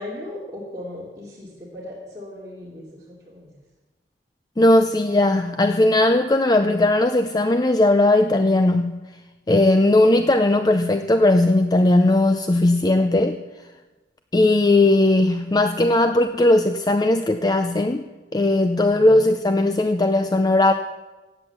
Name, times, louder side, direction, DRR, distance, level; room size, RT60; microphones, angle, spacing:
voice 1, 0.0-3.5 18.7-19.1, left 1 dB, 20° right, -7 dB, 2.9 m, -37 dB
voice 2, 4.6-9.0 9.5-13.4 14.3-18.0 18.3-20.7, left 2 dB, 20° left, 8 dB, 0.5 m, -18 dB
16.0 x 9.0 x 7.1 m, 1.2 s
head